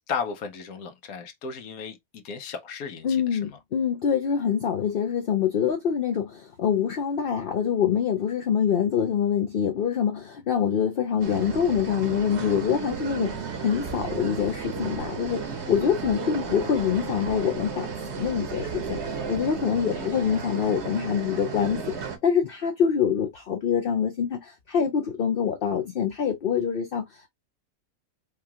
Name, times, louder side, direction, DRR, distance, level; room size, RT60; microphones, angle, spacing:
voice 1, 0.1-3.6 19.9-20.1, left 6 dB, 80° left, 1.2 m, -35 dB
voice 2, 3.0-17.9 18.1-27.3, left 7 dB, 50° left, 0.7 m, -25 dB
sound 1, 11.2-22.2, right 6 dB, 55° right, 1.1 m, -34 dB
4.9 x 2.3 x 2.8 m
omnidirectional pair, 1.5 m